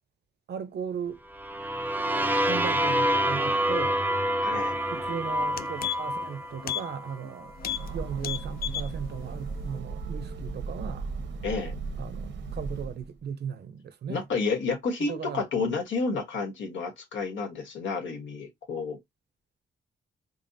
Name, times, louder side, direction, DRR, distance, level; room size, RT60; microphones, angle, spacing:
voice 1, 0.5-1.2 2.4-4.0 4.9-7.5 7.9-11.1 12.0-14.3 15.1-15.4, right 7 dB, 60° right, 0.6 m, -37 dB
sound 1, 1.3-7.2, equal, 10° right, 0.4 m, -27 dB
voice 2, 4.4-4.8 11.4-11.7 14.1-19.0, left 4 dB, 85° left, 1.2 m, -30 dB
sound 2, 5.0-5.1 5.4-6.3 6.6-6.9 7.2-7.3 7.6-7.9 8.2-8.9 9.3-9.4, left 11 dB, 55° left, 0.4 m, -33 dB
Train, 7.4-13.2, right 4 dB, 90° right, 1.0 m, -36 dB
5.2 x 2.0 x 2.7 m
wide cardioid pair, 125°, 19 cm